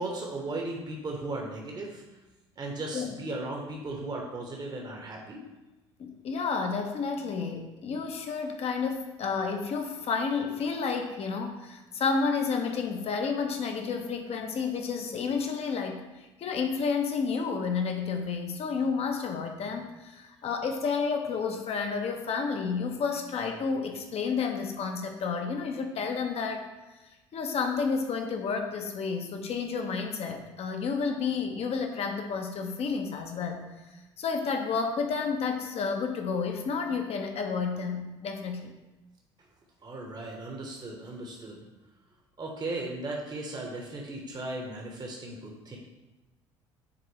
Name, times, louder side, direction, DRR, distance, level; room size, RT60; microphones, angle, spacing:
voice 1, 0.0-2.0 2.6-5.4 39.8-41.6 42.4-45.8, right 2 dB, 30° right, 0 dB, 1.2 m, -36 dB
voice 2, 6.0-26.7 27.3-33.6 34.2-38.7, left 5 dB, 45° left, 4 dB, 1.1 m, -31 dB
9.9 x 3.8 x 3.3 m, 1.1 s
figure-of-eight pair, 60°, 15 cm